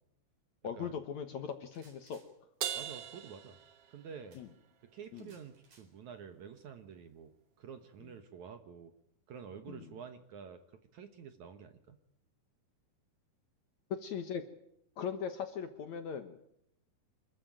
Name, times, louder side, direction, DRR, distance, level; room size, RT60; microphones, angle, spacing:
voice 1, 0.6-2.2 4.4-4.5 5.1-5.3 9.7-9.9 13.9-14.4 15.0-16.4, left 7 dB, 60° left, 9 dB, 2.1 m, -39 dB
sound 1, 1.5-2.3 4.3-4.4 5.0-5.9, right 3 dB, 40° right, 5.0 m, -64 dB
Crash cymbal, 2.6-4.3, right 9 dB, 85° right, 1.3 m, -40 dB
voice 2, 2.7-3.6 3.9-4.4 4.9-8.9 9.3-10.6 10.9-12.0, right 7 dB, 60° right, 9 dB, 2.1 m, -49 dB
26.0 x 14.0 x 9.0 m, 0.78 s
omnidirectional pair, 4.5 m